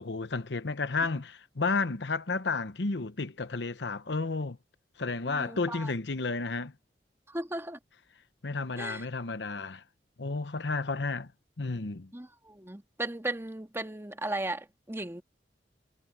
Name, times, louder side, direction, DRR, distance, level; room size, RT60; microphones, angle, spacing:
voice 1, 0.0-4.6 5.0-6.7 8.4-9.8 10.2-11.3 11.6-12.1, left 3 dB, 70° left, 0.9 m, -32 dB
voice 2, 5.3-5.9 7.3-7.8 8.8-9.1 12.1-15.2, right 2 dB, 15° right, 1.8 m, -36 dB
head